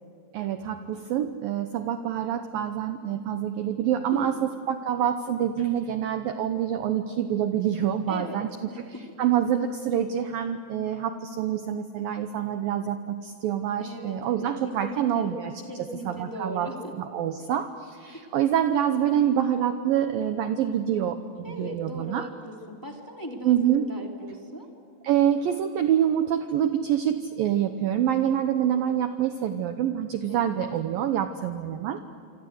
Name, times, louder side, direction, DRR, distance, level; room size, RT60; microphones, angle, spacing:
voice 1, 0.3-8.5 8.9-15.5 16.1-16.7 17.0-21.2 21.6-22.3 23.4-23.9 25.0-32.0, right 10 dB, 80° right, 8 dB, 2.0 m, -26 dB
voice 2, 4.1-4.5 8.1-8.4 8.7-9.0 13.8-15.3 15.7-16.9 18.1-18.2 21.4-24.7 30.3-30.6, equal, 10° left, 1 dB, 1.1 m, -39 dB
27.5 x 26.0 x 8.0 m, 2.2 s
omnidirectional pair, 5.3 m